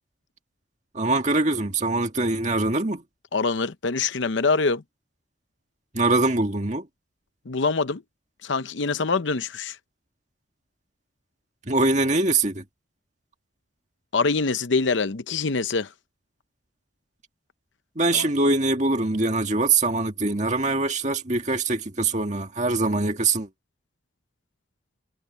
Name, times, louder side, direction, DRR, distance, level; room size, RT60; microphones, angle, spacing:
voice 1, 0.9-3.0 5.9-6.9 11.7-12.6 18.0-23.5, right 3 dB, 35° right, 1.9 m, -23 dB
voice 2, 3.3-4.8 7.5-8.0 8.4-9.8 14.1-15.9 18.1-18.3, left 4 dB, 70° left, 0.7 m, -24 dB
head